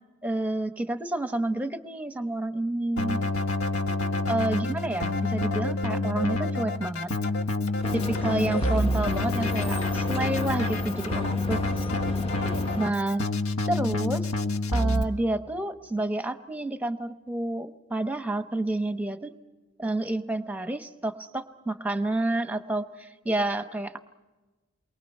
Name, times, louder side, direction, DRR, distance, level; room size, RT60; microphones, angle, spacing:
voice 1, 0.2-3.2 4.3-7.1 7.9-11.6 12.8-13.3 13.7-14.3 14.7-19.3 19.8-24.0, right 2 dB, 5° right, 9 dB, 0.9 m, -29 dB
Keyboard (musical), 3.0-15.0, left 2 dB, 85° left, 1.3 m, -28 dB
sound 1, 7.8-12.9, left 1 dB, 25° left, 1.2 m, -35 dB
29.0 x 23.0 x 5.5 m, 1.2 s
head